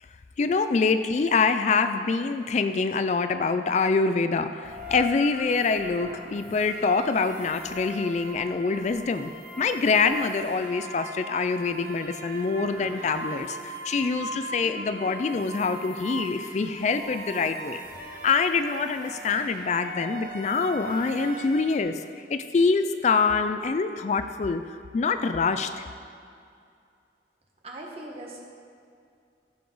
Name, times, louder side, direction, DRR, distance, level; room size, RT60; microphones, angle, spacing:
voice 1, 0.4-9.3 9.6-17.8 18.2-22.0 22.3-24.6 24.9-25.9, left 4 dB, 40° left, 10 dB, 0.3 m, -25 dB
sound 1, 4.6-21.8, right 1 dB, 50° right, 1.4 m, -39 dB
voice 2, 27.6-28.4, right 1 dB, 35° right, -1 dB, 1.4 m, -39 dB
15.5 x 6.9 x 3.9 m, 2.4 s
head